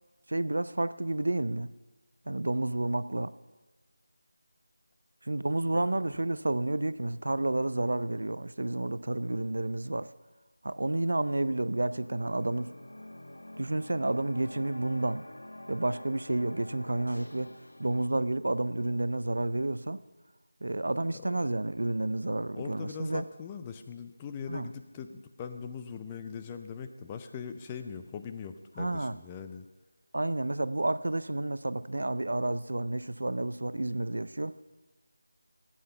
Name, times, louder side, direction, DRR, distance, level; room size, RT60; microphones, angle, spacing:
voice 1, 0.3-1.7 2.3-3.3 5.2-10.1 10.6-12.7 13.6-15.2 15.7-17.5 17.8-20.0 20.6-23.2 24.5-24.7 28.8-29.1 30.1-34.6, right 2 dB, 70° right, 15 dB, 0.4 m, -30 dB
voice 2, 5.7-6.1 21.1-21.4 22.6-29.7, left 6 dB, 15° left, 7 dB, 0.4 m, -41 dB
sound 1, 11.6-18.1, left 1 dB, 85° left, 0.6 m, -47 dB
12.5 x 8.7 x 5.6 m, 1.2 s
figure-of-eight pair, 170°, 0 cm